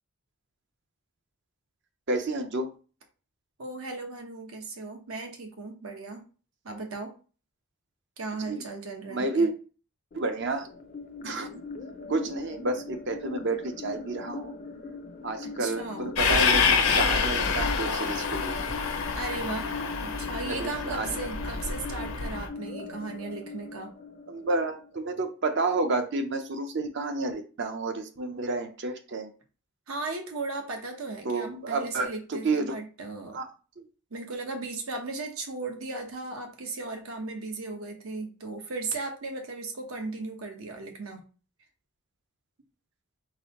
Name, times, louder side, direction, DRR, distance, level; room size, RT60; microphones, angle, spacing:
voice 1, 2.1-2.7 8.5-8.6 9.1-9.5 10.1-10.7 11.2-11.6 12.1-14.5 15.2-18.6 20.5-21.1 24.3-29.3 31.2-32.7 33.3-33.5 33.8-33.9, right 3 dB, 55° right, 6 dB, 0.6 m, -30 dB
voice 2, 3.6-6.2 6.6-7.1 8.2-9.5 15.4-16.1 16.9-17.0 19.1-19.7 20.0-23.9 29.9-33.4 34.1-41.2, right 3 dB, 80° right, 3 dB, 1.0 m, -36 dB
sound 1, 10.1-25.1, left 4 dB, 40° left, 0.4 m, -41 dB
Train, 16.2-22.5, left 5 dB, 85° left, 0.7 m, -27 dB
4.0 x 3.5 x 2.9 m, 0.36 s
head